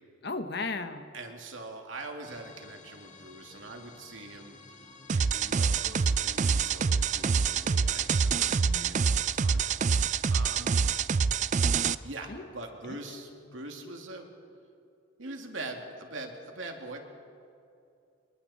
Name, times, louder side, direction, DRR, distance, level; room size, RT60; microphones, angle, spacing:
voice 1, 0.2-1.1 8.7-8.9 12.3-12.5 12.8-13.0, left 3 dB, 55° left, 8 dB, 1.3 m, -35 dB
voice 2, 1.1-4.6 5.1-9.6 10.3-10.8 12.0-14.3 15.2-17.0, right 2 dB, 85° right, 2 dB, 2.6 m, -43 dB
sound 1, 2.2-10.4, left 4 dB, 40° left, 1.7 m, -53 dB
sound 2, 5.1-11.9, right 5 dB, 40° right, 0.4 m, -26 dB
26.5 x 23.0 x 4.3 m, 2.5 s
head